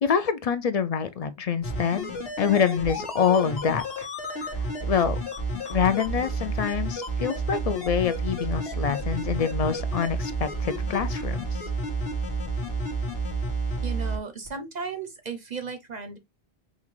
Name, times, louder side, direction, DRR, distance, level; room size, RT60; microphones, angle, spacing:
voice 1, 0.0-4.1 4.4-4.5 4.8-5.2 5.7-11.4, left 7 dB, 50° left, 0.4 m, -26 dB
sound 1, 1.6-14.2 14.5-14.6, right 2 dB, 75° left, 1.5 m, -30 dB
voice 2, 13.8-16.2, right 5 dB, 50° right, 0.6 m, -35 dB
5.5 x 2.4 x 3.0 m
omnidirectional pair, 1.1 m